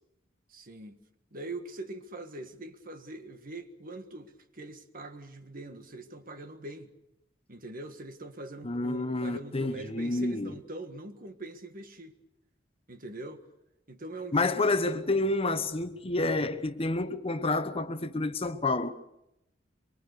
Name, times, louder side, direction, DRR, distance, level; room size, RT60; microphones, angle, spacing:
voice 1, 0.5-1.0 1.3-6.9 7.5-12.1 12.9-13.4 13.9-14.4, right 2 dB, 50° right, 1.7 m, -42 dB
voice 2, 8.6-10.5 14.3-18.9, left 2 dB, 30° left, 1.0 m, -29 dB
24.0 x 24.0 x 6.7 m
head